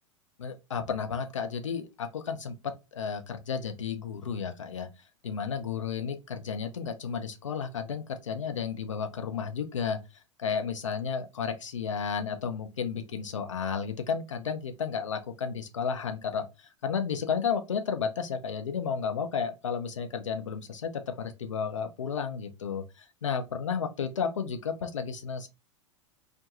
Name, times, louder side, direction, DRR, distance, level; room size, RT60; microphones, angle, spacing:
voice 1, 0.4-4.9 5.2-10.0 10.4-25.5, left 6 dB, 75° left, 0.6 m, -32 dB
2.4 x 2.2 x 2.9 m
figure-of-eight pair, 90°, 16 cm